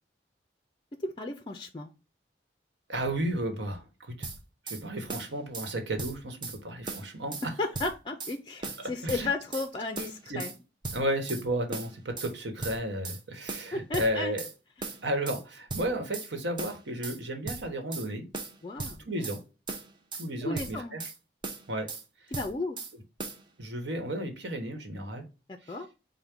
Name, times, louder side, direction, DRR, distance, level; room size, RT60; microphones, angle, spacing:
voice 1, 1.0-1.9 7.4-10.5 13.7-14.4 18.6-19.3 20.4-21.0 22.3-22.8 25.5-25.9, left 3 dB, 25° left, 0.4 m, -34 dB
voice 2, 2.9-4.3 4.7-7.4 9.0-9.3 10.3-10.4 10.9-14.4 15.0-18.3 19.1-19.4 20.2-21.0 21.7-21.9 23.6-25.2 25.7-25.8, right 1 dB, 80° right, 1.1 m, -33 dB
sound 1, 4.2-4.8 5.1-5.7 6.0-6.6 6.9-7.5 7.7-8.4 8.6-9.7 10.0-10.6 10.8-11.4 11.7-12.3 12.6-13.2 13.5-14.5 14.8-15.4 15.7-16.3 16.6-17.2 17.5-18.1 18.3-19.4 19.7-20.3 20.6-21.2 21.4-22.0 22.3-22.9 23.2-23.4, right 3 dB, 25° right, 0.6 m, -38 dB
5.2 x 2.2 x 4.4 m
head